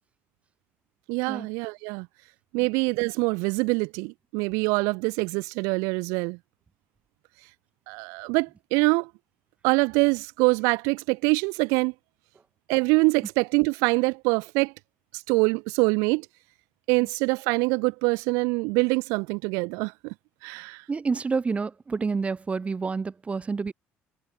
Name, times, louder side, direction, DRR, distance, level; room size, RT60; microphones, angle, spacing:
voice 1, 1.1-2.1 2.5-6.4 7.9-9.1 9.6-11.9 12.7-14.7 15.1-16.3 16.9-20.1 20.4-20.8, right 29 dB, 90° right, 0.4 m, -24 dB
voice 2, 20.9-23.7, right 4 dB, 25° right, 1.1 m, -28 dB
cardioid pair, 100°, 5 cm